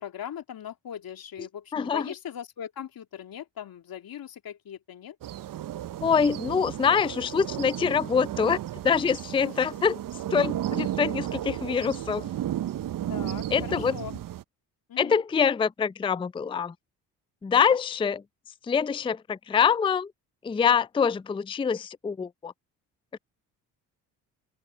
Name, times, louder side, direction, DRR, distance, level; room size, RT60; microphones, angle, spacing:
voice 1, 0.0-5.2 6.3-6.4 9.4-9.6 13.1-14.2 14.9-15.1 17.6-17.8, left 9 dB, 50° left, 2.6 m, -39 dB
voice 2, 1.7-2.0 6.0-8.6 8.8-9.9 10.3-12.3 13.5-14.0 15.0-16.7 17.4-18.2 18.7-20.1 20.4-22.5 23.1-23.2, left 6 dB, 10° left, 0.5 m, -25 dB
sound 1, 5.2-14.4, right 12 dB, 50° right, 0.9 m, -33 dB
open air
hypercardioid pair, 50°, 44 cm